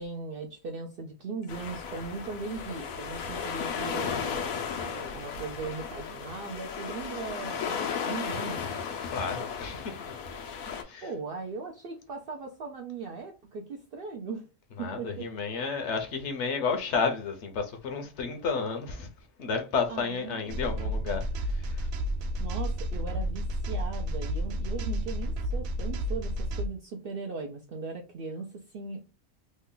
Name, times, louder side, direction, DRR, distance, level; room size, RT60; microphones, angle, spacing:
voice 1, 0.0-8.6 11.0-14.5 14.8-15.3 19.9-20.9 22.4-29.0, right 4 dB, 65° right, 0.5 m, -39 dB
sound 1, 1.5-10.8, left 6 dB, 85° left, 1.1 m, -35 dB
voice 2, 9.1-10.1 10.8-11.1 14.8-19.1 19.4-21.9, left 5 dB, 65° left, 0.9 m, -32 dB
sound 2, 20.5-26.7, equal, 80° right, 1.0 m, -31 dB
3.2 x 2.2 x 3.7 m
omnidirectional pair, 1.4 m